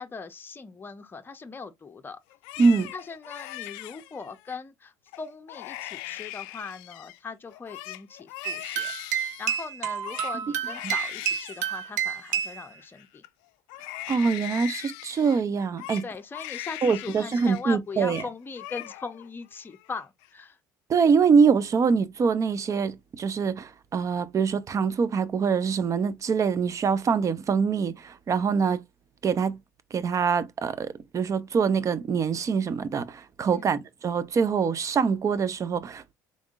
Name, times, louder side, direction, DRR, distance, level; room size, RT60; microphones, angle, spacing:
voice 1, 0.0-2.2 2.9-13.2 16.0-20.6 33.5-33.7, left 4 dB, 25° left, 0.7 m, -40 dB
Crying sobbing, 2.3-4.6 5.1-5.2 5.5-7.2 7.5-13.3 13.7-17.6 17.9-18.3 18.6-19.3 19.6-20.3, left 16 dB, 70° left, 0.4 m, -40 dB
voice 2, 2.6-2.9 10.8-10.9 14.1-16.0 16.8-18.2 20.9-28.8 29.2-29.6 29.9-36.1, right 5 dB, 35° right, 0.6 m, -24 dB
sound 1, 8.4-12.7, right 8 dB, 85° right, 0.6 m, -30 dB
3.7 x 3.5 x 2.4 m
hypercardioid pair, 65°, 9 cm